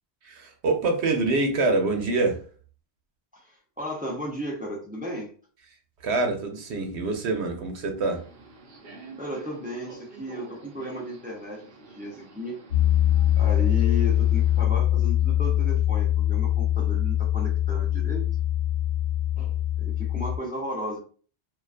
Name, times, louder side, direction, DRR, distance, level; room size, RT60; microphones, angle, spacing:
voice 1, 0.2-2.4 6.0-8.2, right 3 dB, 85° right, 0.9 m, -25 dB
voice 2, 3.3-5.3 9.2-12.6 13.4-18.2 19.4-21.0, left 1 dB, 10° right, 0.5 m, -35 dB
Subway metro underground, 8.0-14.6, right 1 dB, 60° right, 0.8 m, -46 dB
Piano, 12.7-20.4, left 12 dB, 70° left, 0.8 m, -23 dB
2.4 x 2.3 x 2.4 m
omnidirectional pair, 1.1 m